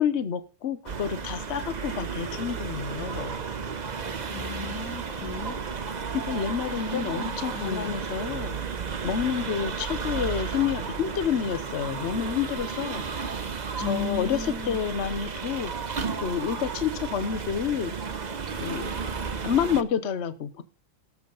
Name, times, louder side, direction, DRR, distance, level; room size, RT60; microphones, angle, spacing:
voice 1, 0.0-3.4 6.1-8.6 9.0-13.3 13.8-15.9 16.2-17.9 18.6-18.9 19.4-20.6, left 8 dB, 50° left, 12 dB, 1.0 m, -29 dB
sound 1, 0.9-19.8, right 5 dB, 40° right, 0.7 m, -33 dB
voice 2, 4.2-5.6 6.9-8.0 13.8-14.8, left 6 dB, 80° left, 9 dB, 1.9 m, -35 dB
18.0 x 7.2 x 3.9 m, 0.32 s
omnidirectional pair, 1.6 m